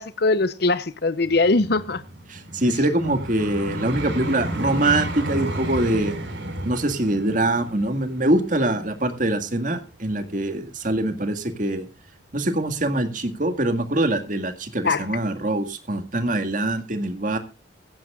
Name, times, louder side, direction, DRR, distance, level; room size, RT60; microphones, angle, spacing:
voice 1, 0.0-2.0 2.7-2.8 14.8-15.1, left 3 dB, 55° left, 0.8 m, -21 dB
Vehicle, 1.2-10.3 10.9-11.1, right 1 dB, 65° right, 4.8 m, -33 dB
voice 2, 2.3-6.2 6.6-11.9 12.3-17.4, right 1 dB, 45° right, 2.0 m, -24 dB
17.0 x 15.5 x 2.4 m
head